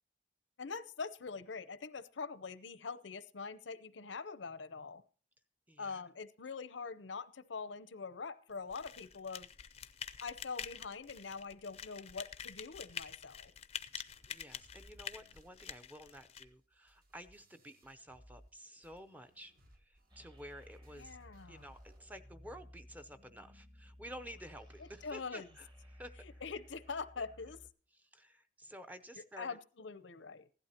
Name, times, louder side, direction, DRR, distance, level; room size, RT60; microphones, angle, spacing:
voice 1, 0.6-5.0 5.8-9.5 10.2-13.5 20.9-21.7 24.8-25.5 26.2-27.6 29.1-30.5, left 4 dB, 85° left, 14 dB, 0.7 m, -44 dB
voice 2, 5.7-6.0 14.0-21.2 21.5-26.2 27.2-27.3 27.9-29.6, equal, 10° right, 9 dB, 0.6 m, -52 dB
sound 1, 8.7-16.4, left 8 dB, 35° left, 0.5 m, -47 dB
sound 2, 14.1-18.6 18.8-22.1, equal, 55° right, 1.7 m, -64 dB
sound 3, 20.1-27.7, equal, 25° right, 1.2 m, -57 dB
16.0 x 11.5 x 2.9 m, 0.41 s
head